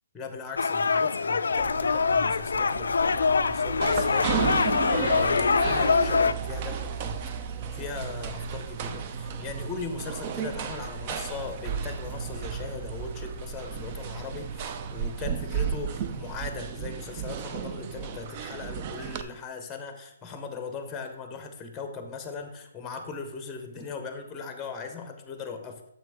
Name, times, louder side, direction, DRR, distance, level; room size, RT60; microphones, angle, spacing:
voice 1, 0.1-7.2 7.7-25.8, left 5 dB, 10° left, 6 dB, 0.7 m, -39 dB
sound 1, 0.6-6.3, left 5 dB, 80° left, 0.3 m, -24 dB
Buzz, 1.5-16.5, right 5 dB, 50° right, 0.8 m, -39 dB
sound 2, 3.8-19.2, right 8 dB, 30° right, 0.4 m, -34 dB
7.0 x 5.9 x 3.4 m, 0.81 s
hypercardioid pair, 155°, 0 cm